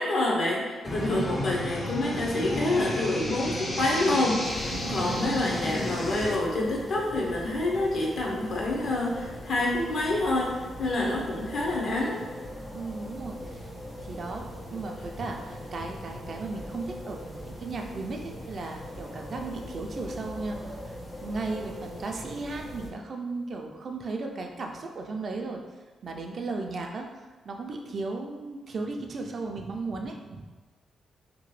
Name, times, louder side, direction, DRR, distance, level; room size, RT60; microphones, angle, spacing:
voice 1, 0.0-12.2, left 2 dB, 60° left, -3 dB, 0.7 m, -27 dB
sound 1, 0.8-6.4, left 1 dB, 25° left, 0.4 m, -32 dB
sound 2, 4.4-22.9, equal, 90° left, 1.0 m, -41 dB
voice 2, 4.7-5.1 12.7-13.7 14.0-20.6 21.2-25.6 26.0-27.1 27.5-30.4, right 3 dB, 50° right, 2 dB, 0.3 m, -35 dB
2.8 x 2.2 x 3.1 m, 1.3 s
cardioid pair, 105°, 0 cm